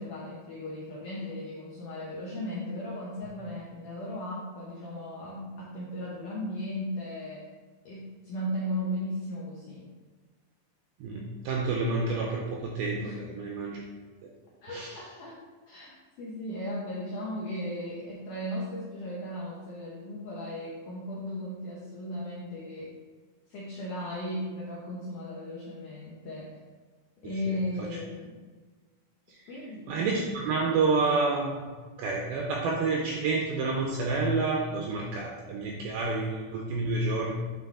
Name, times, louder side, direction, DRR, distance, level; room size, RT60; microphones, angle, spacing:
voice 1, 0.0-7.5 7.9-9.9 13.0-13.2 14.6-15.4 15.7-22.9 23.5-26.5 27.2-28.4 29.5-30.0, left 1 dB, 80° left, -5 dB, 1.8 m, -36 dB
voice 2, 11.0-13.8 14.2-14.3 14.7-15.0 27.2-27.9 29.3-29.5 29.9-31.7 32.0-37.3, right 3 dB, 85° right, -1 dB, 2.1 m, -29 dB
9.5 x 4.0 x 3.6 m, 1.4 s
omnidirectional pair, 5.0 m